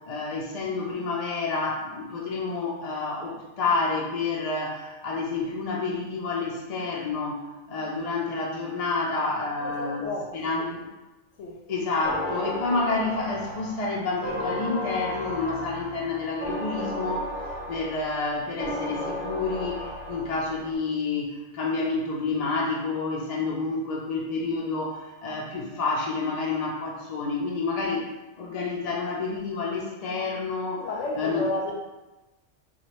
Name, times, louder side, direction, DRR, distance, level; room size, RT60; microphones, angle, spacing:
voice 1, 0.0-7.4 7.7-10.1 10.3-10.9 11.7-17.3 17.7-28.1 28.4-30.9 31.2-31.4, left 3 dB, 45° left, -2 dB, 0.5 m, -29 dB
voice 2, 9.6-10.7 11.4-11.6 30.8-31.7, left 2 dB, 75° left, 0 dB, 0.9 m, -32 dB
sound 1, 12.0-20.8, left 1 dB, 10° left, 0.9 m, -34 dB
4.6 x 2.4 x 3.0 m, 1.1 s
omnidirectional pair, 1.3 m